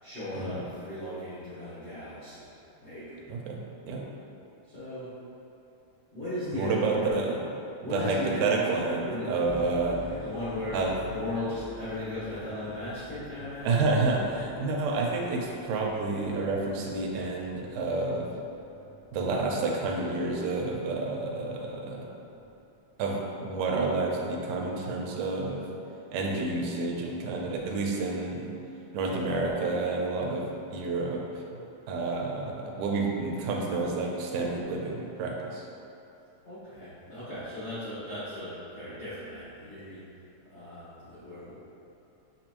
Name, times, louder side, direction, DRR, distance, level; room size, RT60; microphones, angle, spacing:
voice 1, 0.0-2.5 2.8-3.2 4.6-5.1 6.1-7.2 7.8-8.7 9.0-10.8 11.1-13.8 36.4-40.1 40.5-41.5, left 1 dB, 60° left, -15 dB, 0.7 m, -37 dB
voice 2, 3.3-4.1 6.6-7.3 7.9-10.0 10.7-10.9 13.6-18.3 19.1-22.1 23.0-25.6 26.1-28.5 28.9-31.6 31.9-35.7, right 3 dB, 80° right, -1 dB, 2.0 m, -29 dB
sound 1, 9.4-22.8, left 3 dB, 80° left, 2.4 m, -49 dB
6.8 x 2.9 x 2.5 m, 2.9 s
omnidirectional pair, 3.4 m